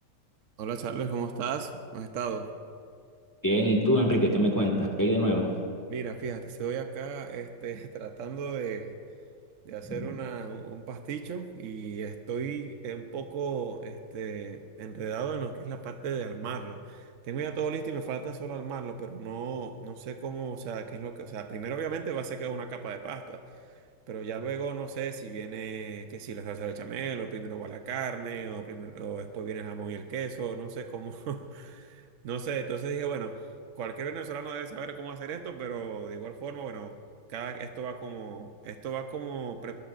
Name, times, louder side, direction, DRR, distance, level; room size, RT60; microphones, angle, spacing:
voice 1, 0.6-2.5 5.9-8.9 9.6-23.8 24.1-33.4 33.7-37.0 37.3-39.8, right 6 dB, 60° right, 6 dB, 0.8 m, -35 dB
voice 2, 3.4-5.5 9.8-10.0, equal, 10° left, 0 dB, 1.5 m, -24 dB
22.5 x 20.0 x 2.5 m, 2.3 s
omnidirectional pair, 2.1 m